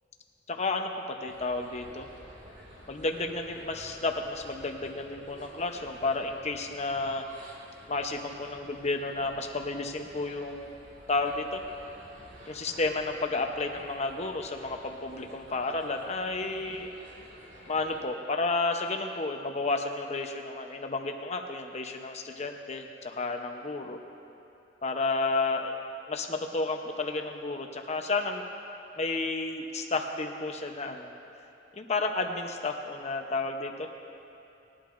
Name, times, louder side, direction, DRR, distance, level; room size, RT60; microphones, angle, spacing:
voice 1, 0.5-2.1 2.9-7.3 7.9-10.8 11.1-11.6 12.5-16.9 17.7-24.0 24.8-25.8 26.1-28.4 29.0-31.1 31.7-33.9, left 3 dB, 35° left, 4 dB, 0.8 m, -31 dB
sound 1, 1.3-18.0, equal, 80° right, 2.3 m, -51 dB
19.5 x 11.5 x 2.6 m, 2.9 s
head